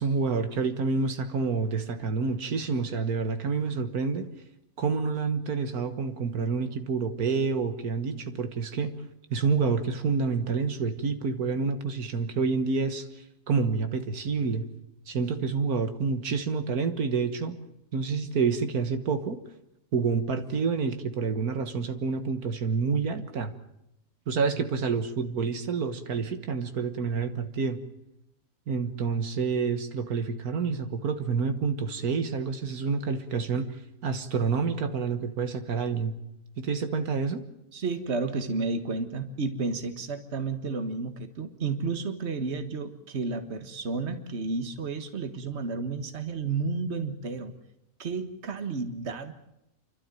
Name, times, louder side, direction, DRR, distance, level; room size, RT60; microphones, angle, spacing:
voice 1, 0.0-4.3 4.8-9.0 9.3-14.7 15.1-17.6 17.9-19.4 19.9-23.5 24.3-27.9 28.7-36.1 36.6-37.4, right 5 dB, 85° right, 9 dB, 1.9 m, -28 dB
voice 2, 37.7-47.5 48.0-49.3, right 4 dB, 50° right, 9 dB, 1.8 m, -32 dB
29.5 x 12.5 x 9.1 m, 0.84 s
omnidirectional pair, 1.5 m